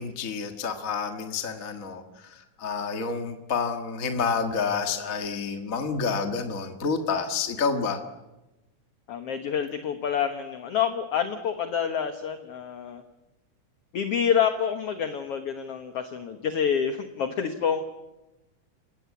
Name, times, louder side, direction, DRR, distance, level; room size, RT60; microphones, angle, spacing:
voice 1, 0.0-2.3 2.6-8.0, left 5 dB, 35° left, 6 dB, 1.5 m, -29 dB
voice 2, 9.1-13.0 13.9-17.8, left 8 dB, 55° left, 7 dB, 2.0 m, -27 dB
29.5 x 17.5 x 8.6 m, 1.0 s
omnidirectional pair, 3.7 m